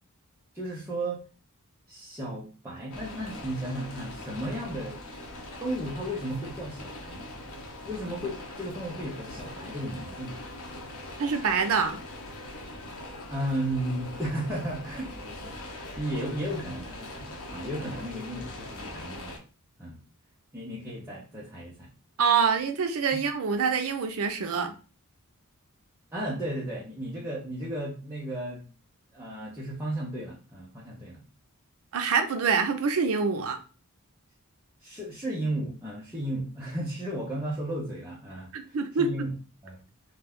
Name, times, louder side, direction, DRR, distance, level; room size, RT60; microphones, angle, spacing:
voice 1, 0.5-1.2 1.9-5.0 5.6-7.3 7.9-10.4 13.3-15.6 16.0-19.4 19.8-20.0 20.5-21.9 26.1-28.6 29.1-31.2 34.8-39.3 39.6-39.8, right 1 dB, 10° right, -7 dB, 0.6 m, -34 dB
sound 1, 2.9-19.4, left 1 dB, 70° left, 0.7 m, -42 dB
voice 2, 11.2-12.0 22.2-24.7 31.9-33.6 38.5-39.3, right 5 dB, 70° right, 7 dB, 0.5 m, -26 dB
2.5 x 2.2 x 3.5 m, 0.35 s
head